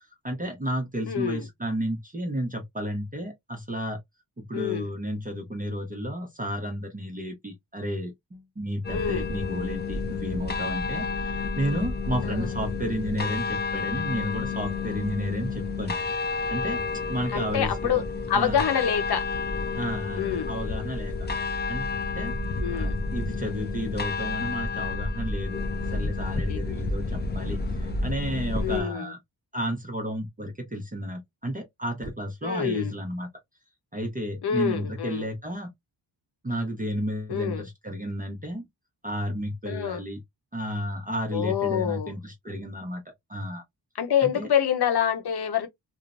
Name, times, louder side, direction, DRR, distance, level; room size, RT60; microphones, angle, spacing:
voice 1, 0.2-4.0 4.4-16.0 16.3-16.8 17.1-18.0 18.3-18.6 19.7-21.1 21.7-22.3 22.7-25.6 25.9-29.2 29.5-33.3 33.9-35.7 36.4-38.6 39.0-40.2 40.5-43.0 43.3-43.6 44.2-44.5, equal, 20° right, 0.6 m, -32 dB
voice 2, 1.1-1.4 4.5-4.9 8.9-9.3 12.2-12.5 17.3-19.3 20.1-20.5 22.6-22.9 26.5-26.6 28.6-29.1 32.4-32.9 34.4-35.3 37.3-37.7 39.6-40.0 41.3-42.2 43.9-45.7, left 8 dB, 65° left, 0.7 m, -27 dB
sound 1, 8.8-28.8, left 4 dB, 25° left, 0.4 m, -30 dB
3.1 x 2.0 x 2.4 m
wide cardioid pair, 145°, 42 cm